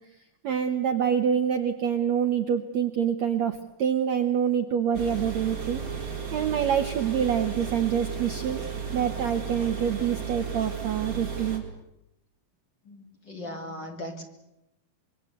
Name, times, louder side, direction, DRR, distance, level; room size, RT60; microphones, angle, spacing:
voice 1, 0.4-8.6 8.9-11.6, right 8 dB, 65° right, 7 dB, 1.9 m, -26 dB
sound 1, 4.9-11.6, right 6 dB, 20° right, 3.9 m, -34 dB
voice 2, 12.8-14.3, left 1 dB, 30° left, 3 dB, 2.9 m, -38 dB
25.5 x 23.0 x 8.2 m, 0.87 s
omnidirectional pair, 4.4 m